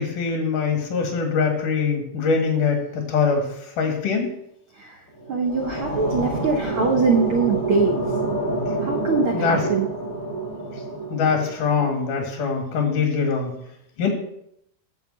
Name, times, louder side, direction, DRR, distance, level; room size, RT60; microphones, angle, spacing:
voice 1, 0.0-3.5 3.8-4.3 9.3-9.6 11.1-13.5 14.0-14.1, left 5 dB, 70° left, 2 dB, 3.3 m, -23 dB
sound 1, 5.1-12.2, right 2 dB, 35° left, 5.7 m, -28 dB
voice 2, 5.3-8.0 8.8-9.9, right 4 dB, 80° right, 3 dB, 1.1 m, -22 dB
10.5 x 4.6 x 7.5 m, 0.76 s
omnidirectional pair, 3.8 m